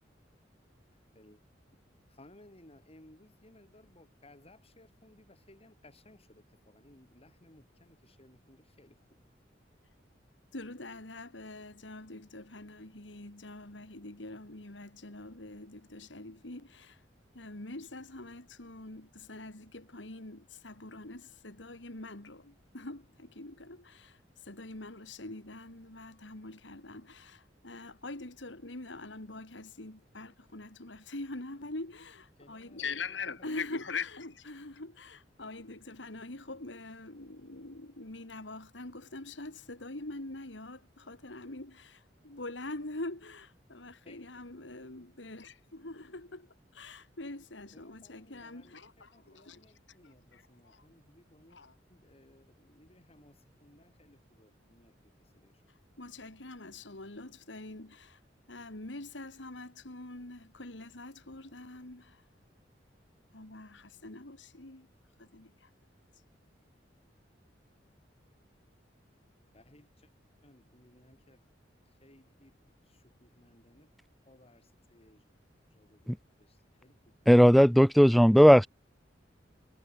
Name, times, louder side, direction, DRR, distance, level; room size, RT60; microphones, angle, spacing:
voice 1, 2.1-9.2 32.4-33.6 44.0-44.8 47.7-48.8 49.1-51.6 51.9-55.6 69.5-70.1 70.4-71.4 72.0-73.9 74.3-75.2 75.7-77.2, left 1 dB, 35° left, 5.3 m, -60 dB
voice 2, 10.5-17.0 17.3-24.2 24.4-46.5 46.7-49.6 50.0-50.8 51.5-51.7 56.0-58.2 58.5-62.2 63.3-64.9 65.2-65.7, left 3 dB, 75° left, 2.7 m, -44 dB
voice 3, 77.3-78.7, equal, ahead, 0.5 m, -17 dB
head